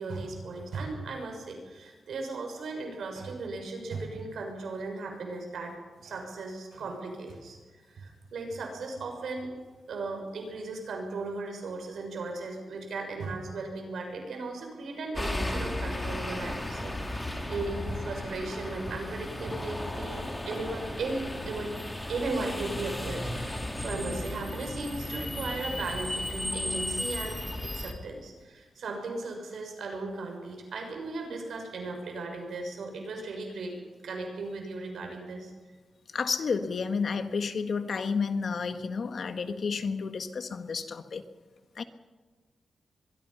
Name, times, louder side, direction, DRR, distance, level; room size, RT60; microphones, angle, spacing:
voice 1, 0.0-5.7 6.0-7.6 7.9-9.5 9.9-21.7 22.1-33.8 34.0-35.5, right 3 dB, 80° right, 3 dB, 6.2 m, -36 dB
sound 1, 15.1-27.9, left 1 dB, 10° left, 3.2 m, -35 dB
voice 2, 36.1-41.2 41.7-41.8, left 5 dB, 60° left, 9 dB, 1.6 m, -31 dB
23.5 x 22.5 x 5.7 m, 1.3 s
wide cardioid pair, 110°, 0 cm